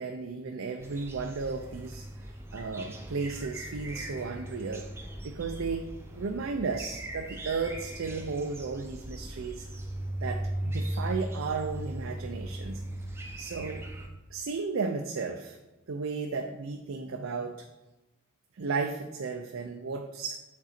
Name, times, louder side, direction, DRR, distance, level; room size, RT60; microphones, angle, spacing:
voice 1, 0.0-4.9 5.2-5.9 6.2-9.7 10.2-12.8 13.4-13.8 14.3-15.6 15.9-17.7 18.5-20.4, right 4 dB, 90° right, 4 dB, 0.5 m, -34 dB
sound 1, 0.8-14.1, right 1 dB, 10° right, 0.6 m, -38 dB
7.5 x 3.9 x 4.3 m, 1.0 s
head